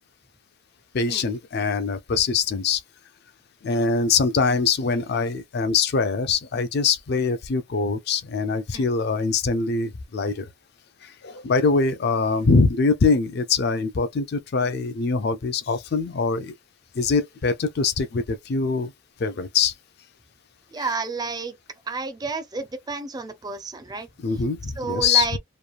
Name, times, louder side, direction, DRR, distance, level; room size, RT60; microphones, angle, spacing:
voice 1, 0.9-2.8 3.6-10.5 11.0-16.5 16.9-18.9 19.2-19.7 20.8-20.9 24.2-25.4, left 4 dB, 50° left, 0.4 m, -23 dB
voice 2, 20.7-21.5 21.9-24.1 24.8-25.4, right 4 dB, 20° right, 0.4 m, -30 dB
3.0 x 2.3 x 2.3 m
head